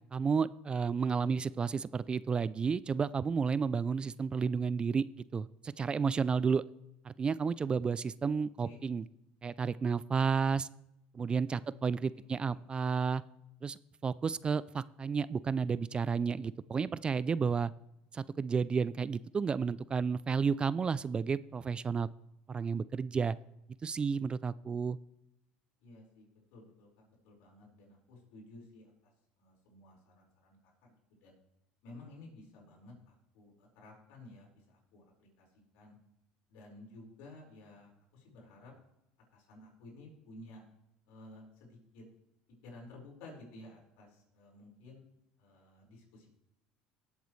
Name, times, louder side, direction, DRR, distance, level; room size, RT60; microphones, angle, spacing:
voice 1, 0.1-5.0 5.3-6.6 7.0-9.0 9.4-10.7 11.1-13.2 13.6-17.7 18.1-22.1 22.5-23.4 23.8-25.0, right 5 dB, 25° right, 19 dB, 0.3 m, -32 dB
voice 2, 11.5-12.6 25.8-29.1 29.4-31.4 31.8-36.0 36.5-38.7 39.3-40.6 41.1-42.0 42.6-45.0 45.4-46.3, left 2 dB, 75° left, -2 dB, 4.9 m, -54 dB
18.0 x 8.1 x 3.2 m, 0.86 s
supercardioid pair, 95°, 4 cm